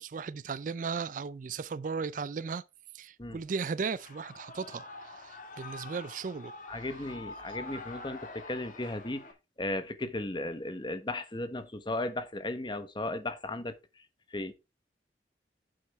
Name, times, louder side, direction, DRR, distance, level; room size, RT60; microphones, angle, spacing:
voice 1, 0.0-2.6 2.9-6.5, right 5 dB, 45° right, 0.4 m, -36 dB
Shout / Cheering, 3.9-9.3, left 3 dB, 45° left, 1.9 m, -46 dB
voice 2, 6.7-9.2 9.6-13.7 14.3-14.5, left 2 dB, 25° left, 1.1 m, -35 dB
8.5 x 7.7 x 3.5 m
head